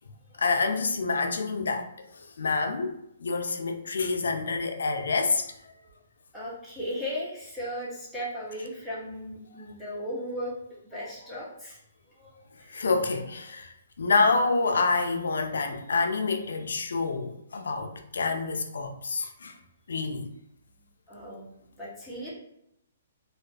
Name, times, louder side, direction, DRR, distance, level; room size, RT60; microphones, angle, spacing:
voice 1, 0.4-1.9 2.1-2.9 3.2-5.5 12.7-19.6 19.9-20.3, left 4 dB, 85° left, 0.3 m, -27 dB
voice 2, 6.3-10.5 10.8-11.8 12.2-12.3 12.6-12.8 21.1-21.4 21.8-22.3, equal, ahead, 0.6 m, -36 dB
2.3 x 2.3 x 2.3 m
hypercardioid pair, 160°, 0 cm